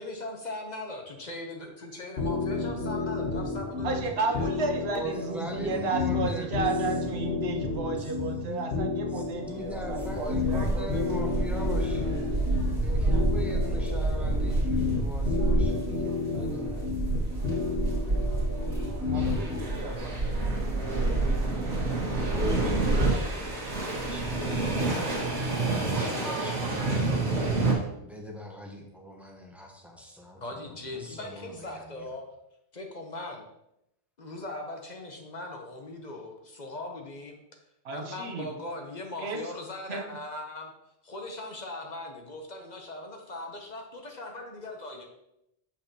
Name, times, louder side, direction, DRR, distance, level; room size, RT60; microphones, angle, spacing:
voice 1, 0.0-4.5 30.4-32.3 32.7-33.4 34.2-37.4 37.9-40.7 41.0-45.1, left 2 dB, 45° left, 2 dB, 0.9 m, -39 dB
sound 1, 2.2-19.6, left 4 dB, 70° left, 1.3 m, -31 dB
voice 2, 3.8-11.3 19.1-20.4 37.8-38.5 39.2-39.4 39.9-40.1, right 3 dB, 70° right, 4 dB, 1.1 m, -33 dB
voice 3, 4.6-6.7 8.0-8.1 8.4-8.7 9.1-12.1 12.8-17.1 22.3-23.3 24.1-25.0 26.0-27.1 28.0-32.1, equal, ahead, 0 dB, 0.9 m, -41 dB
sound 2, 9.7-27.7, right 2 dB, 85° right, 1.8 m, -28 dB
6.5 x 5.7 x 2.9 m, 0.81 s
omnidirectional pair, 1.1 m